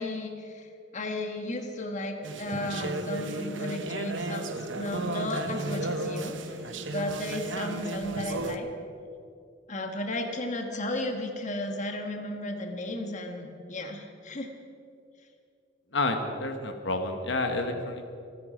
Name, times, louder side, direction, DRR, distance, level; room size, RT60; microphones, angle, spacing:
voice 1, 0.0-8.7 9.7-14.5, left 1 dB, 40° left, 4 dB, 1.3 m, -34 dB
sound 1, 2.2-8.6, right 2 dB, 80° right, 1.0 m, -34 dB
voice 2, 15.9-18.1, left 2 dB, 70° left, 5 dB, 1.4 m, -29 dB
27.0 x 9.7 x 5.1 m, 2.5 s
head